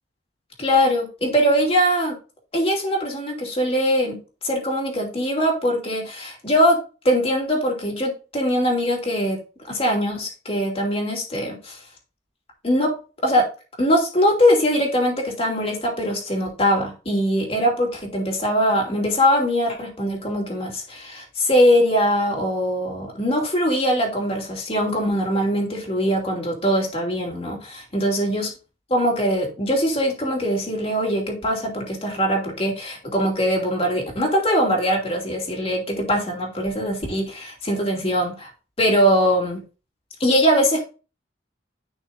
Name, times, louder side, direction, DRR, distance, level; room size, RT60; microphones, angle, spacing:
voice 1, 0.6-2.2 2.5-4.2 4.4-6.8 7.0-9.4 9.7-11.8 12.6-12.9 13.2-13.4 13.8-28.5 28.9-38.5 38.8-39.6 40.2-40.9, equal, 35° left, 0 dB, 2.7 m, -21 dB
10.5 x 5.7 x 2.6 m, 0.32 s
head